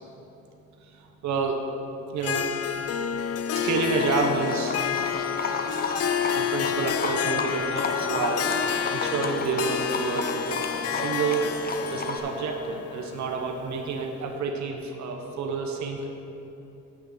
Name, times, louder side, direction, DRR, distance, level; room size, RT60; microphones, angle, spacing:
voice 1, 0.8-1.6 2.1-2.7 3.5-4.8 6.3-8.5 8.9-11.6 11.9-16.1, right 4 dB, 65° right, 3 dB, 1.0 m, -29 dB
Harp, 2.2-14.0, left 8 dB, 55° left, 0.5 m, -29 dB
Livestock farm animals working animals, 3.6-12.2, left 3 dB, 30° left, 0.9 m, -33 dB
9.5 x 5.8 x 6.9 m, 2.9 s
cardioid pair, 90°, 30 cm